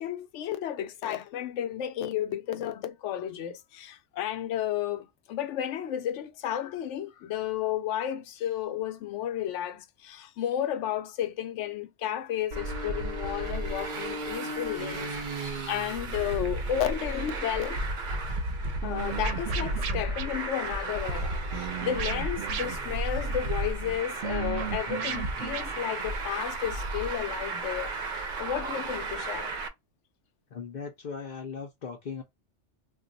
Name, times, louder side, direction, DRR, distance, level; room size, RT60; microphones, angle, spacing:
voice 1, 0.0-17.8 18.8-27.9 28.4-29.5, left 10 dB, 75° left, 0.9 m, -33 dB
Traffic noise roadway noise, 12.5-29.7, right 2 dB, 50° right, 0.6 m, -33 dB
sound 1, 18.8-20.3 21.5-23.1 24.2-25.6, right 8 dB, 80° right, 0.9 m, -35 dB
voice 2, 30.5-32.2, left 5 dB, 50° left, 0.6 m, -38 dB
2.3 x 2.3 x 3.8 m
omnidirectional pair, 1.3 m